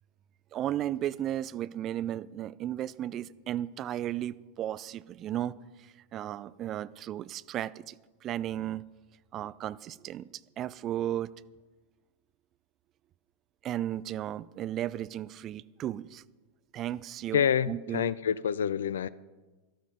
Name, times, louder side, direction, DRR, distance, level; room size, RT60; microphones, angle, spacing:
voice 1, 0.5-8.8 9.3-10.3 10.6-11.3 13.6-16.2 16.7-18.1, right 12 dB, 30° right, 18 dB, 0.4 m, -35 dB
voice 2, 17.3-19.1, left 8 dB, 65° left, 19 dB, 0.4 m, -27 dB
13.0 x 12.5 x 5.3 m, 1.3 s
figure-of-eight pair, 90°, 0 cm